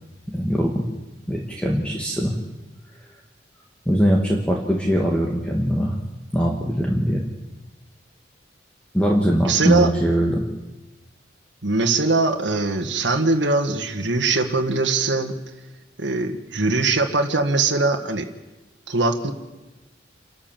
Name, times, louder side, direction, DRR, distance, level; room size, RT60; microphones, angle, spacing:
voice 1, 0.3-0.8 1.3-2.4 3.9-6.0 6.3-7.2 8.9-10.4, equal, 5° left, -1 dB, 1.9 m, -21 dB
voice 2, 9.4-9.9 11.6-15.3 16.0-18.2 18.9-19.3, right 3 dB, 80° right, 3 dB, 1.7 m, -21 dB
28.0 x 12.5 x 7.5 m, 1.1 s
head